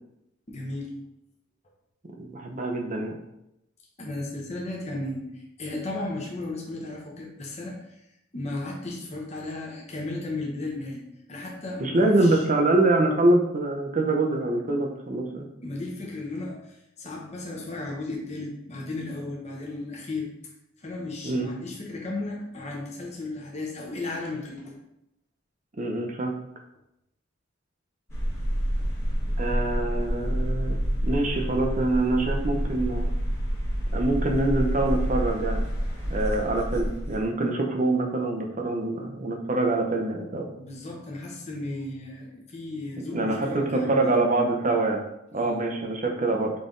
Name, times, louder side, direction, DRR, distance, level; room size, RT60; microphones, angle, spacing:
voice 1, 0.5-0.9 4.0-8.0 8.3-11.0 11.3-12.4 15.6-20.3 20.8-24.8 28.8-28.9 40.6-44.1 45.4-45.6, left 2 dB, 30° left, -2 dB, 1.0 m, -35 dB
voice 2, 2.2-3.2 11.8-15.5 21.2-21.5 25.8-26.4 29.4-33.1 33.9-35.6 36.1-40.5 43.1-45.0 45.3-46.5, right 2 dB, 35° right, 2 dB, 0.6 m, -25 dB
sound 1, 28.1-37.2, equal, 15° left, 1.1 m, -28 dB
4.1 x 3.3 x 3.7 m, 0.84 s
head